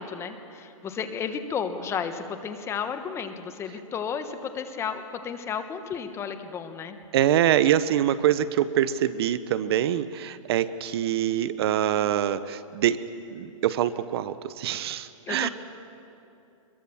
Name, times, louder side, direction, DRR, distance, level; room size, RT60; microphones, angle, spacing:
voice 1, 0.0-7.0 15.3-15.5, left 6 dB, 15° left, 8 dB, 1.2 m, -33 dB
voice 2, 7.1-13.0 13.3-15.5, right 11 dB, 45° right, 14 dB, 0.8 m, -24 dB
23.5 x 22.0 x 7.1 m, 2.7 s
hypercardioid pair, 150°, 18 cm